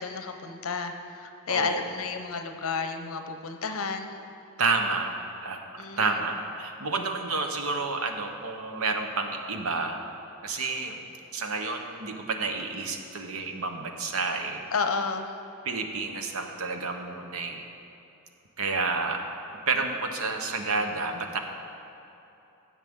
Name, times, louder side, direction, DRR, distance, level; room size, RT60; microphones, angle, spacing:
voice 1, 0.0-4.1 5.8-6.1 14.7-15.3, left 5 dB, 70° left, 6 dB, 0.7 m, -31 dB
voice 2, 1.5-1.9 4.6-5.1 5.4-5.6 6.0-10.0 10.4-11.0 11.3-14.7 15.6-17.7 18.6-19.2 19.7-21.4, right 3 dB, 75° right, 5 dB, 0.9 m, -30 dB
16.5 x 7.3 x 3.7 m, 3.0 s
head